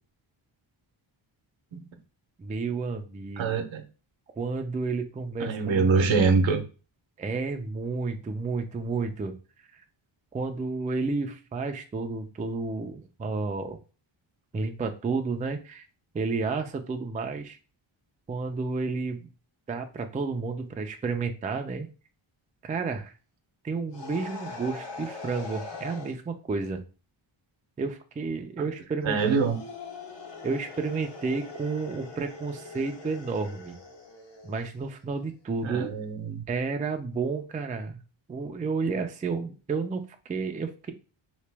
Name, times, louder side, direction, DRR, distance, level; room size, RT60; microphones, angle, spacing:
voice 1, 2.4-3.6 4.4-5.9 7.2-9.4 9.7-9.8 10.3-13.8 14.5-15.9 16.1-17.6 18.3-19.3 19.7-21.9 22.6-23.1 23.6-26.8 27.8-29.2 30.4-33.8 34.4-35.9 36.5-38.0 38.3-40.9, right 4 dB, 20° right, 0.3 m, -31 dB
voice 2, 3.4-3.8 5.4-6.6 29.0-29.6 35.6-36.4, right 4 dB, 70° right, 0.8 m, -24 dB
sound 1, 23.9-26.1 29.2-34.7, left 4 dB, 60° left, 1.2 m, -42 dB
3.0 x 2.8 x 3.3 m
wide cardioid pair, 110°, 47 cm